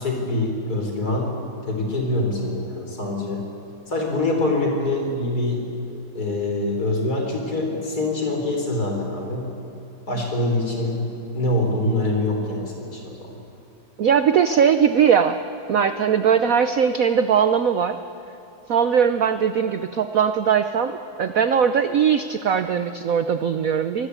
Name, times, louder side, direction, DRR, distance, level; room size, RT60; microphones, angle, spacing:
voice 1, 0.0-1.3 1.6-3.5 3.9-5.7 6.1-9.5 10.1-11.0 11.3-13.4, left 2 dB, 45° left, 1 dB, 4.7 m, -24 dB
voice 2, 14.0-15.4 15.7-18.0 18.7-24.1, right 7 dB, 70° right, 10 dB, 0.8 m, -20 dB
25.0 x 20.0 x 8.2 m, 2.7 s
omnidirectional pair, 2.3 m